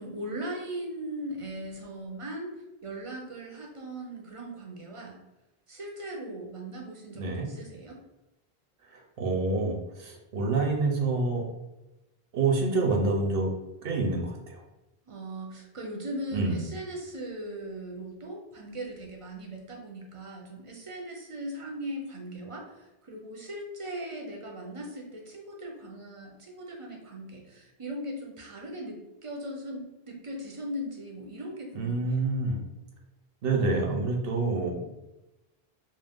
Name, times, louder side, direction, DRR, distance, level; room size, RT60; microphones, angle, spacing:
voice 1, 0.0-2.6 2.8-5.2 5.7-8.0 15.1-32.1, right 1 dB, 45° right, 0 dB, 0.5 m, -39 dB
voice 2, 7.2-7.5 8.9-11.4 12.3-13.5 13.8-14.6 16.3-16.7 31.7-32.6 33.4-34.8, right 3 dB, 70° right, 1 dB, 0.8 m, -27 dB
2.4 x 2.1 x 3.4 m, 0.99 s
omnidirectional pair, 1.0 m